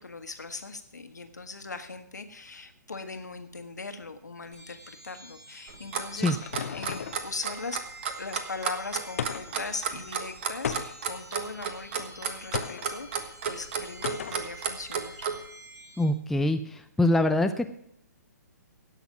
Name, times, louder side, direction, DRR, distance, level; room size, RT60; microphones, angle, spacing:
voice 1, 0.0-6.4 6.7-7.8 8.2-15.3, left 4 dB, 70° left, 8 dB, 1.5 m, -39 dB
glass chimes loop, 4.5-16.0, right 1 dB, 70° right, 6.8 m, -50 dB
sound 1, 5.7-7.3 9.2-9.7 10.6-11.2 12.5-12.9 14.0-14.5, left 7 dB, 55° left, 0.8 m, -34 dB
Clock, 5.7-15.4, right 7 dB, 40° right, 1.4 m, -32 dB
voice 2, 16.0-16.6 17.0-17.7, left 1 dB, 5° left, 7 dB, 0.4 m, -23 dB
17.0 x 6.5 x 6.0 m, 0.71 s
figure-of-eight pair, 125°, 9 cm